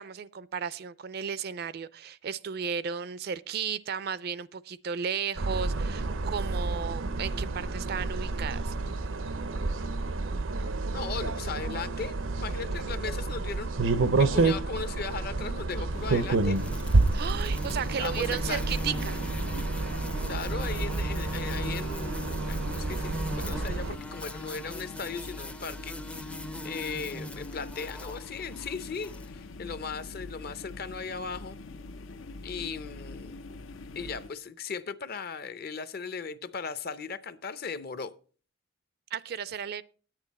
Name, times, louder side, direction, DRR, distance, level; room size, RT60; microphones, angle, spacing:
voice 1, 0.0-8.8 17.1-19.2 39.1-39.8, right 7 dB, 55° right, 0.4 m, -34 dB
sound 1, 5.4-24.0, right 3 dB, 85° right, 0.7 m, -29 dB
voice 2, 10.9-16.6 18.0-18.6 20.3-31.6 32.4-33.4 34.0-38.1, left 5 dB, 50° left, 0.6 m, -37 dB
sound 2, 15.9-34.3, left 2 dB, 90° left, 0.7 m, -44 dB
sound 3, 16.6-29.3, equal, 5° left, 0.4 m, -40 dB
9.8 x 9.0 x 4.1 m
head